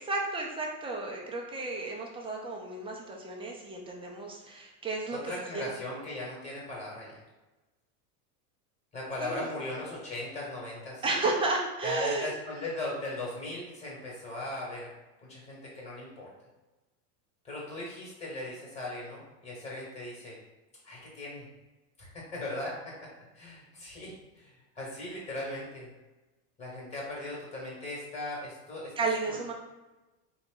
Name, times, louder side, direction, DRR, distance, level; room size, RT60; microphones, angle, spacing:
voice 1, 0.0-5.7 9.2-9.5 11.0-12.3 29.0-29.5, right 3 dB, 10° right, -1 dB, 0.6 m, -33 dB
voice 2, 5.1-7.2 8.9-11.0 11.8-14.9 15.2-16.3 17.4-20.4 20.8-21.4 22.0-22.8 23.4-25.9 26.6-28.9 29.3-29.4, left 1 dB, 15° left, -3 dB, 1.5 m, -38 dB
4.0 x 2.5 x 3.8 m, 1.1 s
supercardioid pair, 125°, 47 cm